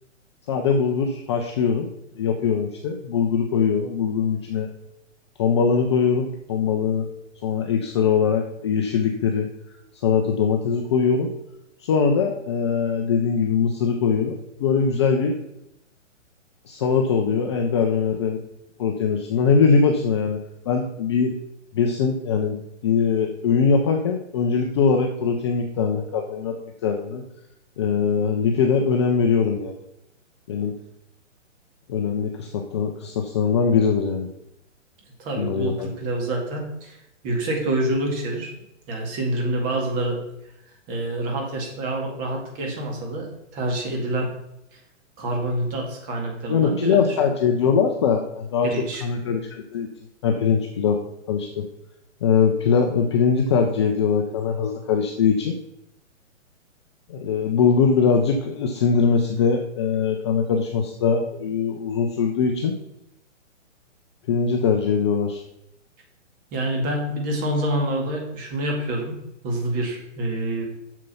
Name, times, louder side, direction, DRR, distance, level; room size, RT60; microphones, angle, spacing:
voice 1, 0.5-1.9 2.1-4.7 5.4-7.1 7.4-9.5 10.0-11.3 11.8-15.4 16.7-18.4 18.8-21.4 21.7-27.2 27.8-29.8 30.5-30.7 31.9-34.3 35.4-35.9 46.5-49.9 50.2-51.0 51.3-51.7 52.2-55.6 57.1-62.8 64.3-65.4, left 6 dB, 20° left, 3 dB, 0.5 m, -22 dB
voice 2, 35.2-37.0 37.2-38.5 38.9-40.2 40.9-44.3 45.2-47.0 48.6-49.0 66.5-69.1 69.4-70.6, right 1 dB, 20° right, 1 dB, 2.1 m, -27 dB
7.5 x 6.8 x 5.4 m, 0.83 s
hypercardioid pair, 150°, 38 cm